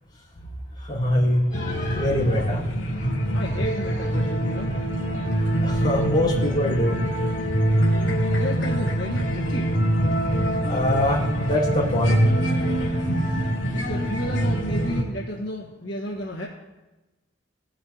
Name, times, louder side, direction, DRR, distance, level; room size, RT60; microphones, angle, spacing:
voice 1, 0.8-2.7 5.5-7.0 10.7-12.3, left 1 dB, 25° left, -8 dB, 4.1 m, -23 dB
sound 1, 1.5-15.0, equal, 85° left, 2.6 m, -24 dB
voice 2, 3.3-4.8 8.3-9.8 13.2-13.4 13.7-16.5, equal, 70° left, -3 dB, 1.4 m, -32 dB
17.5 x 7.6 x 2.9 m, 1.1 s
head